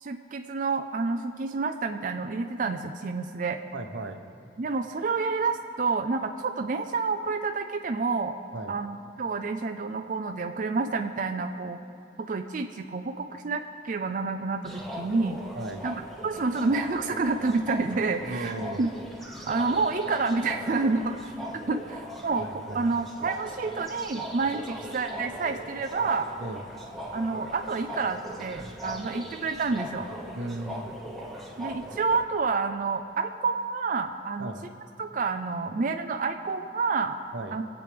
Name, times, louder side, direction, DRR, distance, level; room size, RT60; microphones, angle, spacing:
voice 1, 0.0-3.6 4.6-8.3 8.7-11.8 12.2-15.4 15.8-18.9 19.5-21.3 21.7-26.3 27.1-30.1 31.6-34.5 35.0-37.2 37.5-37.7, right 4 dB, 45° right, 5 dB, 0.4 m, -29 dB
voice 2, 3.7-4.2 8.5-8.8 15.5-15.9 18.2-18.9 22.4-23.1 26.4-26.6 30.3-31.0 34.4-34.6 37.3-37.5, right 2 dB, 90° right, 6 dB, 1.0 m, -36 dB
sound 1, 14.6-32.2, equal, ahead, 1.1 m, -40 dB
23.5 x 8.2 x 3.5 m, 2.6 s
head